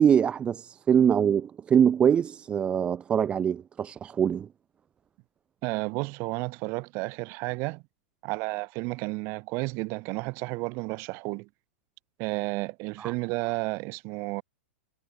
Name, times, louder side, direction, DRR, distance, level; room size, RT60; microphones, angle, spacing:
voice 1, 0.0-4.5 13.0-13.1, right 8 dB, 15° right, 0.4 m, -23 dB
voice 2, 5.6-7.8 8.2-11.5 12.2-14.4, right 27 dB, 40° right, 4.9 m, -32 dB
hypercardioid pair, 145°, 7 cm